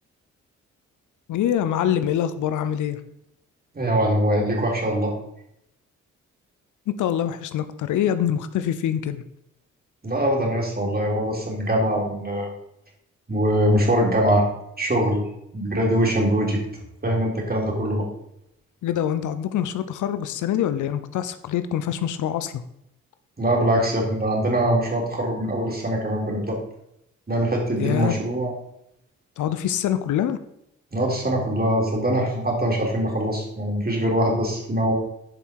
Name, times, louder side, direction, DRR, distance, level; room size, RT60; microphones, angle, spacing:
voice 1, 1.3-3.0 6.9-9.2 18.8-22.6 27.8-28.1 29.4-30.4, left 10 dB, 85° left, 12 dB, 0.7 m, -25 dB
voice 2, 3.7-5.1 10.0-12.5 13.3-14.5 14.8-15.2 15.5-16.6 17.0-18.0 23.4-26.6 27.3-28.5 30.9-34.9, right 1 dB, 30° right, -1 dB, 3.8 m, -22 dB
10.5 x 5.6 x 4.7 m, 0.78 s
supercardioid pair, 60°, 30 cm